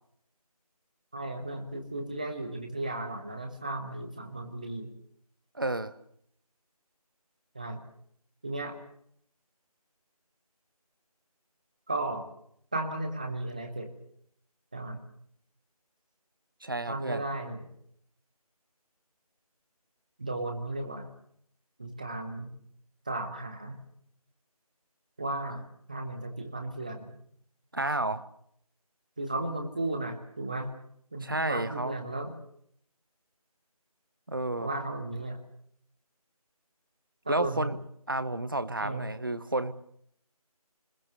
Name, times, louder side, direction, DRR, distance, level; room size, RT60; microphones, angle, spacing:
voice 1, 1.1-4.9 7.5-7.8 8.4-8.8 11.9-12.3 12.7-13.9 14.7-15.0 16.9-17.7 20.2-21.1 21.8-22.5 23.0-23.8 25.2-27.1 29.2-30.7 31.1-32.3 34.6-35.4 37.2-37.8 38.8-39.0, right 2 dB, 10° right, 5 dB, 1.1 m, -35 dB
voice 2, 5.5-5.9 16.6-17.2 27.7-28.3 31.2-31.9 34.3-34.7 37.3-37.8 38.1-39.7, right 2 dB, 35° right, 13 dB, 1.0 m, -31 dB
25.0 x 20.5 x 6.8 m, 0.68 s
figure-of-eight pair, 170°, 20 cm